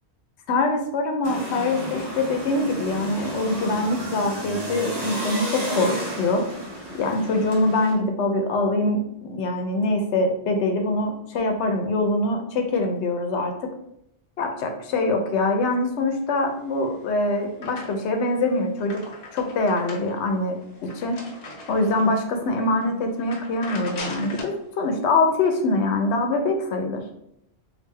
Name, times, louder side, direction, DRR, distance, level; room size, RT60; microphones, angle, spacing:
voice 1, 0.5-6.5 6.9-13.7 14.4-21.2 21.7-27.0, left 2 dB, 85° left, 4 dB, 0.9 m, -24 dB
sound 1, 1.2-7.9, equal, 25° right, 1.0 m, -32 dB
sound 2, 16.7-18.2 18.6-22.2 22.7-22.8 23.2-24.6, left 2 dB, 45° left, 0.6 m, -39 dB
3.2 x 2.6 x 3.4 m, 0.78 s
omnidirectional pair, 1.1 m